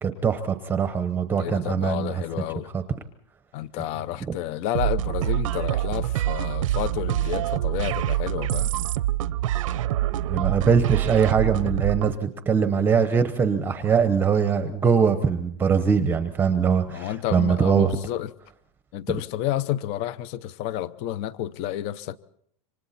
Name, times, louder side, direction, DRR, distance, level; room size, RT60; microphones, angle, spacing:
voice 1, 0.0-2.2 2.7-2.8 4.3-4.4 10.3-17.9, right 6 dB, 10° right, 0.9 m, -22 dB
voice 2, 1.3-2.7 3.5-8.7 16.9-18.3 18.9-22.2, left 12 dB, 40° left, 0.8 m, -30 dB
sound 1, 4.7-12.2, right 13 dB, 85° right, 0.8 m, -26 dB
27.5 x 25.0 x 4.3 m
supercardioid pair, 165°, 16 cm